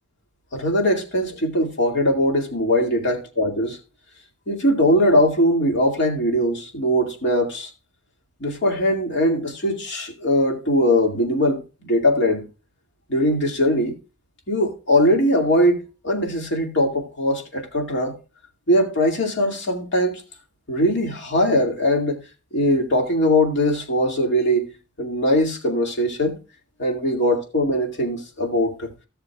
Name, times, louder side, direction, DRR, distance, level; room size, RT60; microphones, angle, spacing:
voice 1, 0.5-3.8 4.5-7.7 8.4-12.4 13.1-13.9 14.5-18.1 18.7-20.2 20.7-22.2 22.5-24.7 25.0-26.4 26.8-28.9, equal, 55° left, 2.3 m, -21 dB
17.5 x 6.6 x 2.4 m
head